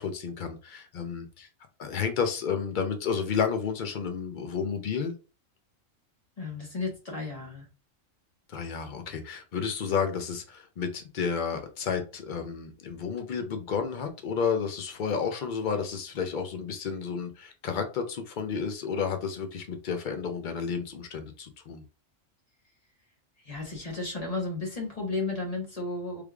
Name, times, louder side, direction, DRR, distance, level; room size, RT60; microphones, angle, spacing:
voice 1, 0.0-1.5 1.8-5.2 8.5-21.8, left 6 dB, 60° left, 0.5 m, -31 dB
voice 2, 6.4-7.7 23.4-26.2, left 3 dB, 30° left, 1.0 m, -33 dB
3.3 x 3.1 x 2.3 m
omnidirectional pair, 1.4 m